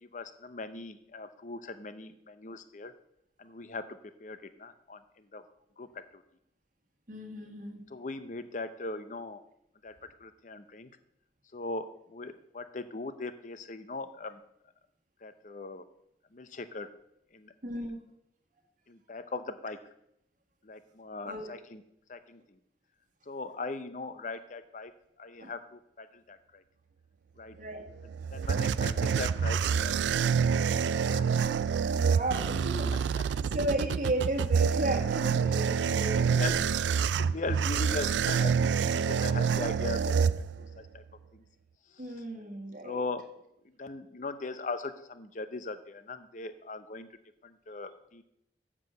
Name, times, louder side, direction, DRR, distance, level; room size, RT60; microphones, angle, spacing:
voice 1, 0.0-2.9 3.4-5.4 5.8-6.2 7.9-9.4 9.8-10.9 11.5-14.4 15.2-15.9 16.3-16.9 17.3-17.5 18.9-19.8 20.6-21.8 22.1-22.4 23.3-24.9 25.2-26.6 27.4-27.6 28.3-30.2 30.7-31.4 33.3-33.4 36.3-36.8 37.2-41.0 41.3-41.4 42.8-47.1 47.4-48.2, left 3 dB, 45° left, 11 dB, 0.7 m, -40 dB
voice 2, 7.1-7.8 17.6-18.0 21.2-21.5 25.4-25.5 27.6-27.8 31.9-32.9 33.4-36.6 42.0-43.0, right 1 dB, 50° right, 3 dB, 1.5 m, -34 dB
sound 1, 27.9-40.9, right 6 dB, 85° right, 0.3 m, -27 dB
7.3 x 6.1 x 7.8 m, 0.78 s
head